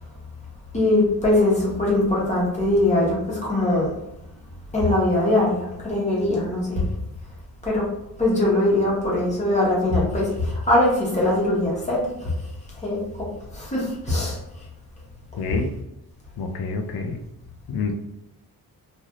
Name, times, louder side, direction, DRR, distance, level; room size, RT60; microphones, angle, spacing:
voice 1, 0.7-3.9 4.7-6.8 7.6-7.9 8.2-12.3 12.7-14.4, left 1 dB, 20° left, -5 dB, 1.1 m, -21 dB
voice 2, 15.3-15.7 16.4-17.2 17.7-17.9, left 4 dB, 80° left, 3 dB, 0.5 m, -27 dB
3.2 x 2.6 x 2.6 m, 0.88 s
wide cardioid pair, 145°, 38 cm